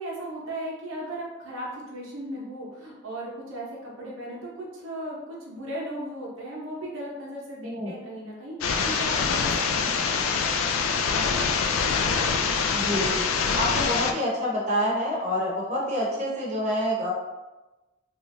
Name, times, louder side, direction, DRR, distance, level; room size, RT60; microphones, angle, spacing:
voice 1, 0.0-10.9 11.7-11.9, right 1 dB, 80° right, -4 dB, 0.8 m, -37 dB
sound 1, 8.6-14.1, left 5 dB, 80° left, 0.3 m, -25 dB
voice 2, 12.7-13.3 13.6-17.1, equal, 35° right, -4 dB, 0.7 m, -27 dB
3.0 x 2.5 x 2.5 m, 1.1 s
head